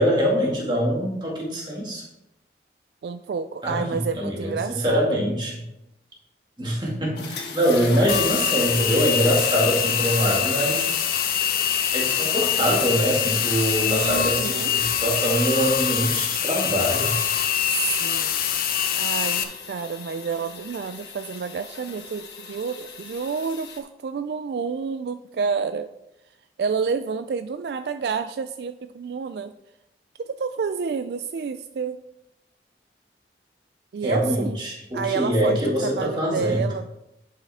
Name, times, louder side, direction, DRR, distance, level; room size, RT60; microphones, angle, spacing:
voice 1, 0.0-2.0 3.6-5.6 6.6-10.9 11.9-17.1 34.0-36.6, equal, 25° right, -3 dB, 2.0 m, -24 dB
voice 2, 3.0-5.2 13.8-14.7 17.6-18.4 19.0-25.9 26.6-29.5 30.2-32.0 33.9-34.6 34.9-36.9, right 5 dB, 65° right, 10 dB, 0.3 m, -29 dB
sound 1, 7.1-23.8, left 5 dB, 70° left, 1.6 m, -41 dB
sound 2, 8.1-19.4, left 8 dB, 55° left, 0.7 m, -24 dB
10.5 x 5.8 x 3.5 m, 0.88 s
head